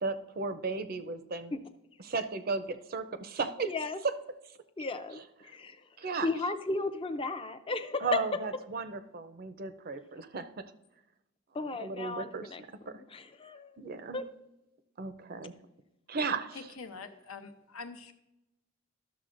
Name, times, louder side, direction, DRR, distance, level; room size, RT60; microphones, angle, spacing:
voice 1, 0.0-1.5 2.0-3.7 4.0-4.1 6.0-6.3 8.0-10.7 11.8-12.5 12.9-13.0 13.8-14.2 15.0-15.5 16.1-16.6, right 4 dB, 45° right, 10 dB, 0.5 m, -35 dB
voice 2, 3.6-4.0 4.8-5.9 6.2-8.2 11.5-12.6 13.1-13.8 14.1-14.2, left 3 dB, 25° left, 9 dB, 0.5 m, -35 dB
voice 3, 16.5-18.1, left 4 dB, 80° left, 7 dB, 0.8 m, -45 dB
12.5 x 6.9 x 2.5 m, 0.92 s
head